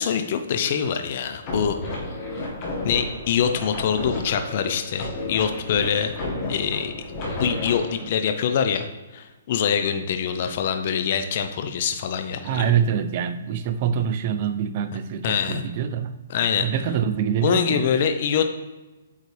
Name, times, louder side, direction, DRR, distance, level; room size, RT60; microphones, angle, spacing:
voice 1, 0.0-1.8 2.8-6.2 6.5-6.9 7.4-12.7 15.2-15.6 16.3-16.7 17.4-18.5, left 7 dB, 45° left, 7 dB, 0.6 m, -24 dB
sound 1, 1.4-8.1, left 2 dB, 30° left, 1.6 m, -32 dB
voice 2, 12.4-16.2 16.6-17.9, right 8 dB, 40° right, 10 dB, 0.5 m, -25 dB
8.3 x 4.0 x 3.3 m, 1.1 s
hypercardioid pair, 150°, 0 cm